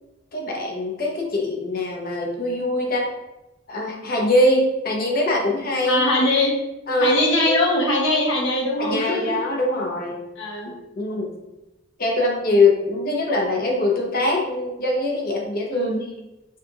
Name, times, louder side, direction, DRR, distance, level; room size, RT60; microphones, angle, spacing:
voice 1, 0.3-3.1 3.7-6.0 6.9-7.2 7.4-7.5 8.8-10.2 10.6-11.3 12.0-15.9, left 2 dB, 50° left, -1 dB, 0.9 m, -22 dB
voice 2, 5.8-6.5 7.0-9.3 10.4-10.7 15.7-16.0, left 1 dB, 75° left, -1 dB, 1.1 m, -21 dB
5.8 x 2.5 x 2.9 m, 1.0 s
head